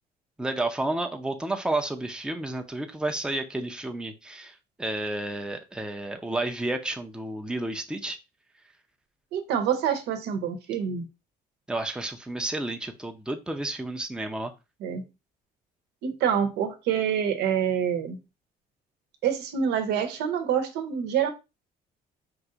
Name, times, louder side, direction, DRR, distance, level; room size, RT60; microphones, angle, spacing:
voice 1, 0.4-8.2 11.7-14.5, right 2 dB, 5° right, 0.6 m, -31 dB
voice 2, 9.3-11.1 14.8-15.0 16.0-18.2 19.2-21.3, right 8 dB, 80° right, 1.0 m, -26 dB
4.7 x 2.6 x 3.8 m
cardioid pair, 110°, 17 cm